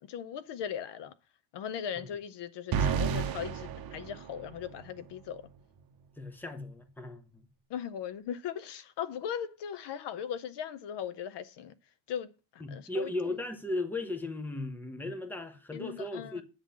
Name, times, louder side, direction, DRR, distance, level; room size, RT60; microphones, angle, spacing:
voice 1, 0.1-1.1 1.5-5.4 7.7-11.7 12.1-13.1 15.7-16.4, left 8 dB, 60° left, 0.6 m, -38 dB
sound 1, 2.7-4.9, right 7 dB, 45° right, 0.9 m, -32 dB
voice 2, 6.2-7.5 12.6-16.4, left 2 dB, 5° left, 0.8 m, -36 dB
8.9 x 3.7 x 6.9 m
cardioid pair, 160°, 49 cm